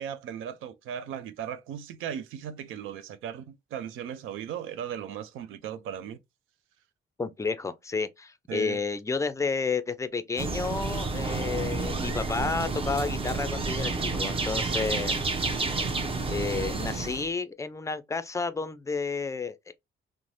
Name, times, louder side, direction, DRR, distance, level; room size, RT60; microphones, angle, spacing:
voice 1, 0.0-6.2 8.5-8.8, right 9 dB, 85° right, 0.5 m, -37 dB
voice 2, 7.2-15.2 16.3-19.7, left 4 dB, 15° left, 0.4 m, -31 dB
sound 1, 10.4-17.3, right 3 dB, 30° right, 0.6 m, -30 dB
3.1 x 2.0 x 2.6 m
cardioid pair, 90°, 20 cm